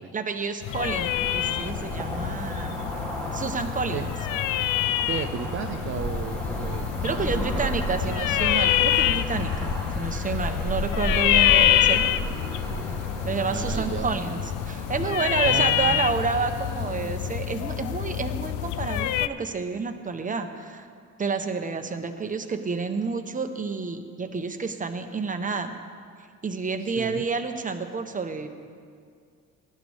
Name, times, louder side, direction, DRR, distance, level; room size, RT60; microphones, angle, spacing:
voice 1, 0.1-2.8 3.3-4.1 7.0-12.1 13.2-20.9 21.2-25.8 26.4-28.5, right 4 dB, 25° right, 6 dB, 1.1 m, -29 dB
sound 1, 0.6-19.3, left 13 dB, 90° left, 0.5 m, -26 dB
Cricket / Motor vehicle (road), 0.7-17.1, right 1 dB, 5° left, 2.1 m, -34 dB
voice 2, 5.1-8.2 11.6-11.7 13.5-14.2 15.4-16.0 26.9-27.2, right 7 dB, 40° right, 5 dB, 0.6 m, -34 dB
18.5 x 11.0 x 3.5 m, 2.2 s
cardioid pair, 90°, 30 cm